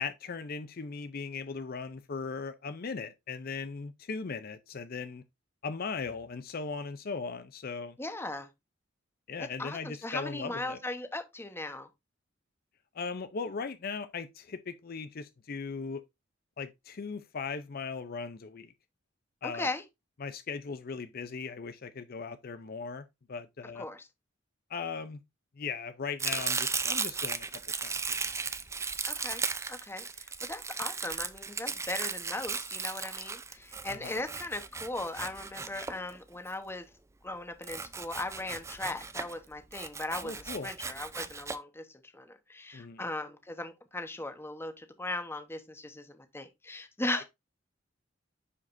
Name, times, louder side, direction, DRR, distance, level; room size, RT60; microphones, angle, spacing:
voice 1, 0.0-5.2 5.6-8.0 9.3-10.8 12.9-16.0 16.6-18.7 19.4-19.7 20.2-23.9 24.7-25.2 25.6-27.5 27.8-27.9 28.2-28.3 33.9-34.2 40.2-40.7 42.7-43.0, left 5 dB, 50° left, 0.5 m, -38 dB
voice 2, 8.0-8.5 9.6-11.9 19.4-19.8 23.7-24.1 29.1-29.4 29.7-36.9 37.2-47.2, left 2 dB, 10° left, 0.9 m, -38 dB
Domestic sounds home sounds, 26.2-36.5 37.6-39.4 39.7-41.6, right 5 dB, 15° right, 0.5 m, -36 dB
9.7 x 5.0 x 2.6 m
head